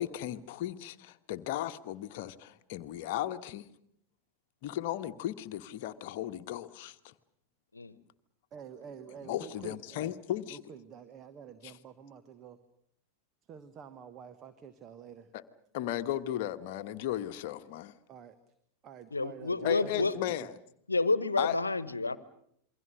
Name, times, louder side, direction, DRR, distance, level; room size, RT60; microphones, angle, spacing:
voice 1, 0.0-3.7 4.6-7.1 9.2-10.6 11.6-11.7 15.3-15.4 15.7-17.9 19.6-20.5 21.4-21.6, left 12 dB, 50° left, 9 dB, 1.2 m, -35 dB
voice 2, 8.5-10.1 10.5-12.6 13.5-15.3 18.1-18.4 18.8-20.5, right 7 dB, 30° right, 11 dB, 1.4 m, -48 dB
voice 3, 19.1-20.1 20.9-22.2, left 3 dB, 80° left, 17 dB, 1.1 m, -29 dB
28.0 x 23.0 x 6.6 m, 0.70 s
figure-of-eight pair, 90°, 0 cm